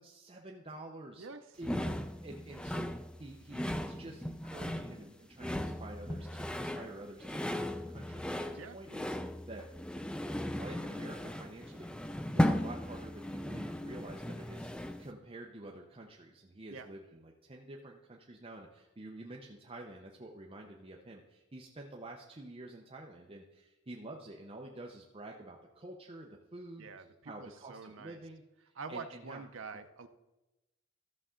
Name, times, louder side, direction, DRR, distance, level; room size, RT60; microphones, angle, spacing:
voice 1, 0.0-1.3 1.6-1.9 2.2-2.9 3.2-9.2 9.5-9.7 10.5-29.4, right 2 dB, 25° right, 0 dB, 0.7 m, -49 dB
sound 1, 1.6-15.1, left 1 dB, 5° left, 0.3 m, -36 dB
voice 2, 26.8-28.2 28.8-30.1, right 4 dB, 70° right, 8 dB, 0.6 m, -46 dB
13.5 x 6.7 x 3.7 m, 1.0 s
head